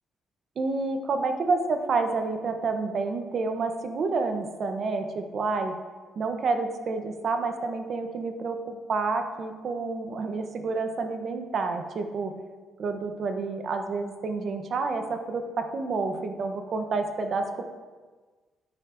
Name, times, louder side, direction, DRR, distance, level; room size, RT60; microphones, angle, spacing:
voice 1, 0.6-5.7 6.2-12.3 12.8-17.6, right 3 dB, 55° right, 6 dB, 0.7 m, -29 dB
9.5 x 4.7 x 2.5 m, 1.4 s
cardioid pair, 90°, 0 cm